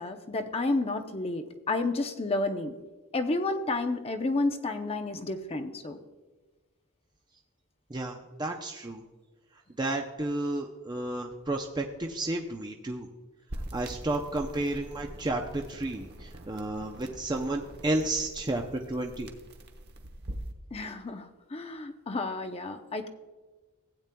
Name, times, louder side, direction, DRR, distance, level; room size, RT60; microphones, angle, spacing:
voice 1, 0.0-2.7 3.1-6.0 20.7-23.1, left 2 dB, 25° left, 6 dB, 0.6 m, -31 dB
voice 2, 7.9-9.0 9.8-13.1 13.7-19.3, right 2 dB, 20° right, 2 dB, 0.6 m, -32 dB
sound 1, 13.5-20.5, right 1 dB, 45° right, 1.0 m, -43 dB
16.0 x 8.8 x 2.2 m, 1.3 s
head